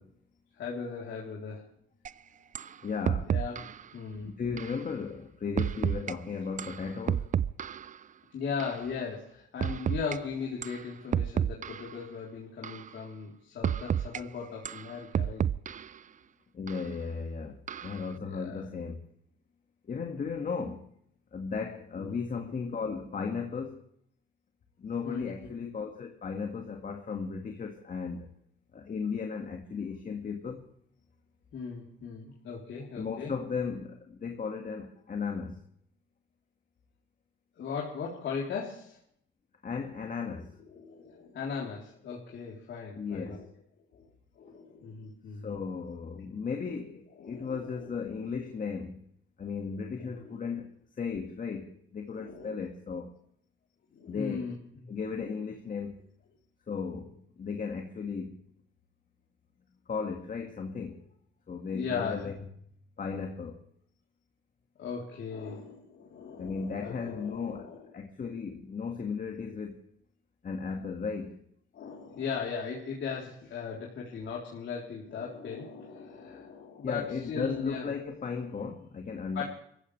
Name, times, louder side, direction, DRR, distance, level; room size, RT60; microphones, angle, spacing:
voice 1, 0.5-1.7 3.2-4.3 8.3-15.5 18.1-18.7 22.0-22.2 25.0-25.5 31.5-33.3 37.6-39.0 40.7-43.5 43.9-44.1 44.4-45.6 47.2-47.9 49.7-50.5 52.1-52.6 53.9-54.9 61.7-62.3 64.8-67.9 71.7-77.9 79.3-79.4, left 5 dB, 65° left, 3.6 m, -38 dB
sound 1, 2.0-2.1 2.5-2.7 3.0-3.8 4.6-4.8 5.6-6.1 6.6-8.0 8.6-8.8 9.6-10.2 10.6-10.8 11.1-12.0 12.6-12.9 13.6-14.2 14.6-16.0 16.7-16.8 17.7-18.0, right 9 dB, 40° right, 0.5 m, -31 dB
voice 2, 2.8-3.3 4.2-7.3 16.5-19.0 19.9-20.9 21.3-23.8 24.8-28.3 28.7-30.7 33.0-35.5 39.6-40.5 43.0-43.4 45.4-49.0 49.4-50.7 51.0-53.1 54.1-54.5 54.9-56.0 56.7-58.4 59.9-61.0 61.5-62.3 63.0-63.6 66.4-67.6 67.9-69.9 70.4-71.4 76.8-79.4, left 5 dB, 40° left, 1.9 m, -35 dB
25.5 x 15.0 x 3.3 m
cardioid pair, 90°, 20 cm